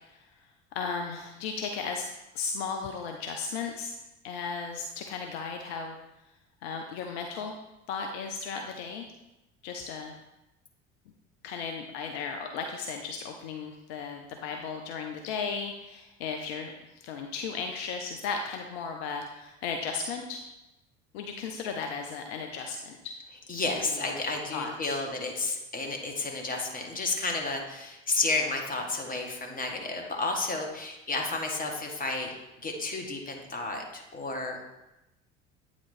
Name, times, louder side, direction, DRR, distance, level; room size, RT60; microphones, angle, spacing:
voice 1, 0.7-2.0 2.3-4.0 4.2-6.0 6.6-7.6 7.9-9.1 9.6-10.2 11.4-20.4 21.1-23.1 23.8-24.2 24.5-24.9, left 5 dB, 60° left, 4 dB, 0.6 m, -35 dB
voice 2, 23.5-32.4 32.6-34.6, left 3 dB, 25° left, 2 dB, 1.2 m, -31 dB
8.5 x 3.1 x 4.1 m, 0.97 s
figure-of-eight pair, 65°, 36 cm